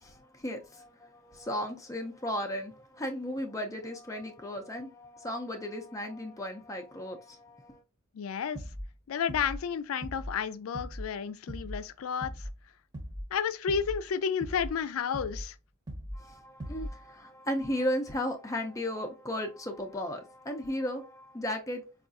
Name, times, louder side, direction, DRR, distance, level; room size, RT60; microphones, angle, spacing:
voice 1, 0.0-7.8 16.1-21.8, equal, 15° left, 0.4 m, -35 dB
voice 2, 8.1-8.6 9.1-12.5 13.3-15.6, left 7 dB, 85° left, 0.4 m, -31 dB
sound 1, 8.5-8.9 9.3-9.7 10.0-10.4 10.7-11.1 11.5-11.8 12.2-12.6 12.9-13.3 13.7-14.0 14.4-14.8 15.1-15.5 15.9-16.2 16.6-17.0, equal, 20° right, 0.8 m, -39 dB
4.5 x 2.4 x 2.6 m
head